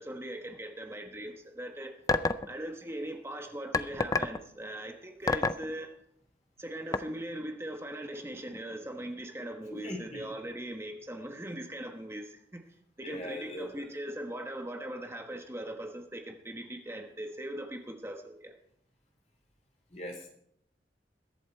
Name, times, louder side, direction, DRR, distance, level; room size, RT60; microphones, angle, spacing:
voice 1, 0.0-1.9 2.5-5.9 6.6-12.6 13.0-18.5, right 1 dB, 15° right, 3 dB, 1.2 m, -40 dB
sound 1, 2.1-2.5 3.7-4.4 5.3-5.6 6.9-7.0, left 3 dB, 20° left, 0.4 m, -26 dB
voice 2, 9.7-10.5 13.0-14.0 19.9-20.3, left 1 dB, 40° left, 1 dB, 3.4 m, -41 dB
22.0 x 7.7 x 4.5 m, 0.69 s
head